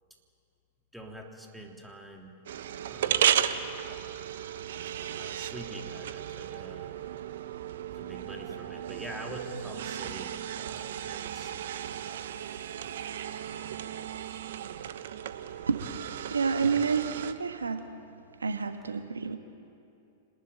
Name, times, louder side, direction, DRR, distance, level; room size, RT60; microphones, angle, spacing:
voice 1, 0.9-2.3 2.9-3.6 5.1-7.0 7.9-11.9, right 1 dB, 5° right, 0 dB, 3.3 m, -45 dB
sound 1, 2.5-17.3, right 10 dB, 65° right, 1.1 m, -34 dB
voice 2, 16.3-17.9 18.4-19.4, right 5 dB, 85° right, 7 dB, 1.3 m, -29 dB
26.0 x 20.0 x 9.1 m, 2.6 s
figure-of-eight pair, 100°, 0 cm